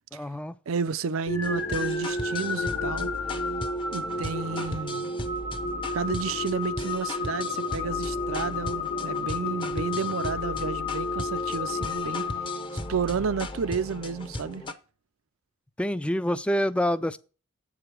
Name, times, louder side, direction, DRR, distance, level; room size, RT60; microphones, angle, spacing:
voice 1, 0.1-0.5 15.8-17.2, equal, 5° left, 0.3 m, -26 dB
voice 2, 0.7-3.1 3.9-5.1 5.9-12.3 12.9-14.6, right 5 dB, 75° right, 0.5 m, -31 dB
sound 1, 1.3-13.2, left 3 dB, 75° left, 1.2 m, -31 dB
sound 2, 1.4-14.7, left 2 dB, 25° left, 0.7 m, -37 dB
8.3 x 5.0 x 5.9 m
head